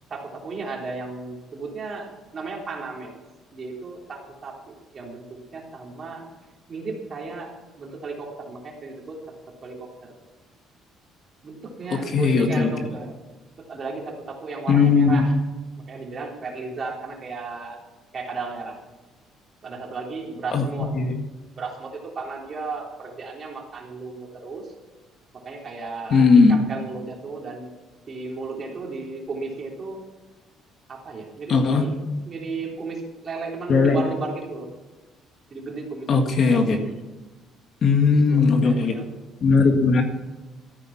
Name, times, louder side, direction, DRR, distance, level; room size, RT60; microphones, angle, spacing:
voice 1, 0.1-3.2 3.5-5.2 5.5-6.3 6.7-9.2 9.6-10.1 11.4-13.1 13.6-15.3 15.9-17.8 18.1-18.8 19.6-20.9 21.6-24.7 25.3-27.6 28.1-30.0 30.9-34.7 35.5-36.3 38.1-39.1, right 3 dB, 35° right, 0 dB, 3.5 m, -34 dB
voice 2, 11.9-12.7 14.7-15.2 20.5-21.1 26.1-26.6 31.5-31.8 33.7-34.0 36.1-36.8 37.8-39.0 39.4-40.0, left 4 dB, 45° left, 4 dB, 1.8 m, -18 dB
14.5 x 9.8 x 6.0 m, 1.2 s
cardioid pair, 135°, 0 cm